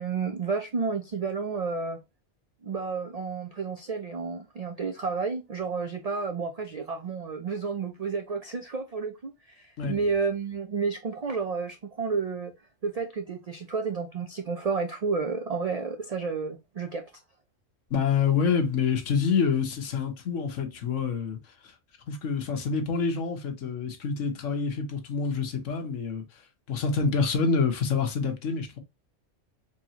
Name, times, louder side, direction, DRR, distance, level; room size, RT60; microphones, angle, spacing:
voice 1, 0.0-2.0 2.6-12.5 12.8-17.1, right 4 dB, 65° right, 0.3 m, -31 dB
voice 2, 17.9-21.4 21.6-21.7 22.1-26.2 26.7-28.8, left 5 dB, 75° left, 1.3 m, -27 dB
4.4 x 2.8 x 2.8 m
omnidirectional pair, 1.3 m